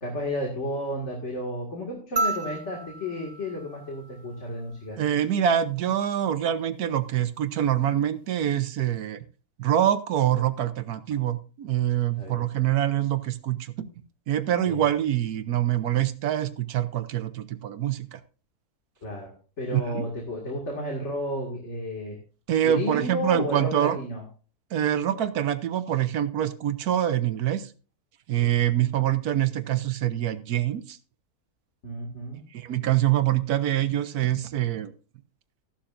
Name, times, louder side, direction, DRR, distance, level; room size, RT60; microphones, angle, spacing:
voice 1, 0.0-5.0 12.2-12.5 14.6-14.9 19.0-22.2 22.6-24.2 28.4-28.7 31.8-32.4, equal, 50° left, 0 dB, 2.4 m, -32 dB
sound 1, 2.2-4.7 6.3-6.4, right 3 dB, 40° right, 0.6 m, -32 dB
voice 2, 5.0-9.2 9.6-13.9 14.3-18.2 19.7-20.1 22.5-24.0 24.7-27.7 28.3-31.0 32.5-34.9, right 11 dB, 90° right, 12 dB, 1.4 m, -25 dB
14.0 x 11.5 x 2.6 m, 0.37 s
omnidirectional pair, 1.5 m